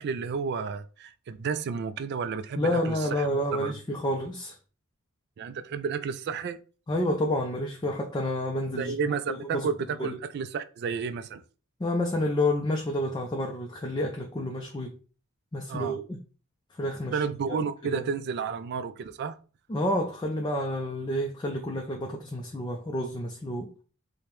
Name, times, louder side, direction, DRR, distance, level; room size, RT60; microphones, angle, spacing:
voice 1, 0.0-3.8 5.4-6.6 8.8-11.4 15.7-16.0 17.1-19.4, right 5 dB, 50° right, 0.3 m, -31 dB
voice 2, 2.6-4.5 6.9-9.0 9.5-9.7 10.0-10.2 11.8-15.0 15.5-16.2 16.8-17.2 17.5-17.6 17.8-18.0 19.7-23.7, left 1 dB, 20° left, 0.4 m, -29 dB
4.9 x 2.1 x 3.0 m
head